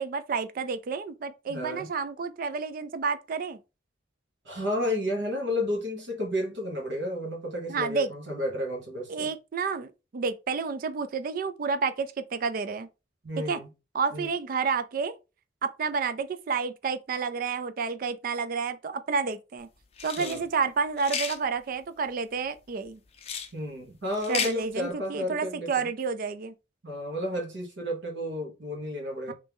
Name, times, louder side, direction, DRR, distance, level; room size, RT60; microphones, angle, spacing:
voice 1, 0.0-3.6 7.7-8.1 9.1-12.9 13.4-13.6 13.9-15.1 15.6-19.7 20.0-23.0 24.3-26.5 29.3-29.4, right 5 dB, 50° right, 0.4 m, -30 dB
voice 2, 1.5-1.9 4.4-9.3 13.2-13.7 14.1-14.3 20.2-20.4 23.5-25.9 26.8-29.3, left 1 dB, 70° right, 1.2 m, -32 dB
sound 1, 20.0-20.4 21.0-21.4 23.2-23.5 24.1-24.5, left 6 dB, 35° left, 0.5 m, -32 dB
3.1 x 2.7 x 3.5 m
head